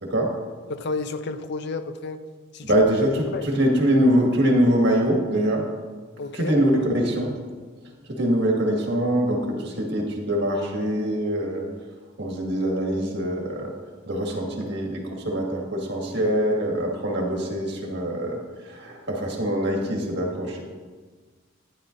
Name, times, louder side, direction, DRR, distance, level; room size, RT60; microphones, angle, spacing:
voice 1, 0.0-0.4 2.7-5.7 6.3-7.3 8.1-11.6 12.2-13.7 14.1-20.6, equal, 55° right, -1 dB, 1.7 m, -23 dB
voice 2, 0.7-2.2 2.5-2.7 3.3-3.5 6.2-6.5, left 3 dB, 55° left, 10 dB, 0.5 m, -31 dB
11.0 x 10.0 x 2.6 m, 1.4 s
head